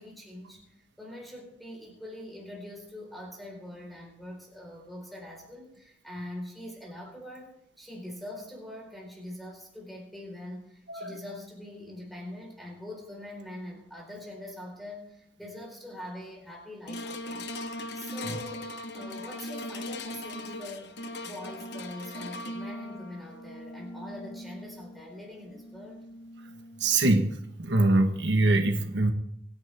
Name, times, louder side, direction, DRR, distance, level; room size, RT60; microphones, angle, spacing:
voice 1, 0.0-17.5 17.9-21.0 21.2-26.0, left 1 dB, ahead, -1 dB, 4.5 m, -43 dB
sound 1, 16.9-27.3 27.8-27.9, left 1 dB, 65° left, 1.1 m, -40 dB
voice 2, 26.8-27.3 27.6-29.1, right 2 dB, 75° right, 5 dB, 1.4 m, -23 dB
25.0 x 10.0 x 3.6 m, 0.73 s
head